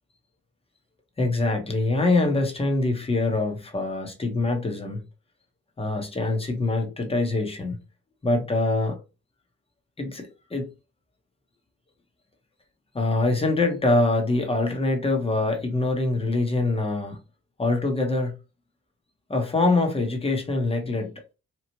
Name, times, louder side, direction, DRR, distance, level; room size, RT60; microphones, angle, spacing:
voice 1, 1.2-5.0 5.8-7.8 8.2-9.0 10.0-10.7 12.9-17.2 17.6-18.3 19.3-21.2, left 2 dB, 20° left, 1.0 m, -24 dB
3.0 x 2.4 x 2.8 m
cardioid pair, 90°, 30 cm